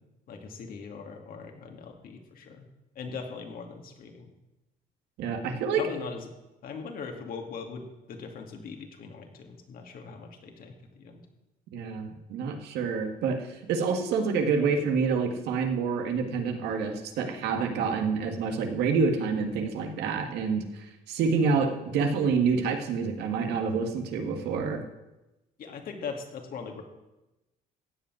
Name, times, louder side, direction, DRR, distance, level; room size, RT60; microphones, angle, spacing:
voice 1, 0.3-2.7 3.0-4.3 5.8-6.3 6.6-11.2 25.6-26.8, left 5 dB, 60° left, 3 dB, 2.4 m, -40 dB
voice 2, 5.2-5.8 11.7-24.8, right 5 dB, 80° right, 4 dB, 1.9 m, -27 dB
16.0 x 5.5 x 9.2 m, 1.0 s
cardioid pair, 110°, 17 cm